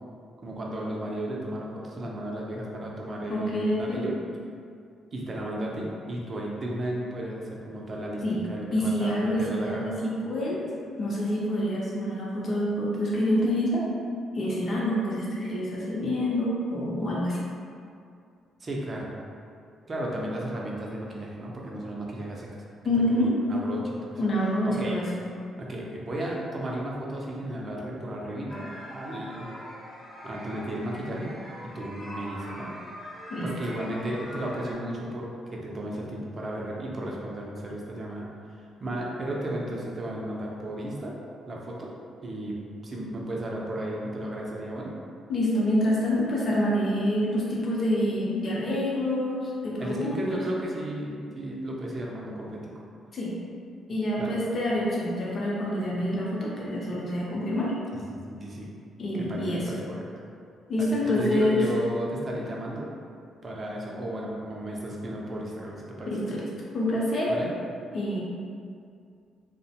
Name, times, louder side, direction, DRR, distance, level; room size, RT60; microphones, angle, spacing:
voice 1, 0.4-4.2 5.1-9.9 18.6-19.1 19.9-22.6 23.1-24.2 24.8-25.0 25.6-29.5 30.2-31.3 31.7-32.7 33.4-38.3 38.6-41.1 41.5-41.9 42.2-42.6 42.8-44.9 49.8-52.8 54.2-54.4 57.9-58.7 59.2-60.1 60.8-62.9 63.4-66.1 67.3-67.5, right 1 dB, 35° right, -3 dB, 0.5 m, -34 dB
voice 2, 3.3-4.0 8.2-8.4 8.7-9.9 10.2-10.6 11.0-13.8 14.3-17.4 22.8-23.3 24.2-25.1 33.3-33.5 45.3-50.4 53.1-53.3 53.9-57.7 59.0-59.6 60.7-61.6 66.1-66.4 66.7-67.3 67.9-68.2, left 1 dB, 45° left, -5 dB, 0.6 m, -27 dB
sound 1, 28.5-34.7, equal, 5° left, 0.6 m, -42 dB
2.4 x 2.1 x 2.7 m, 2.3 s
cardioid pair, 90°, 0 cm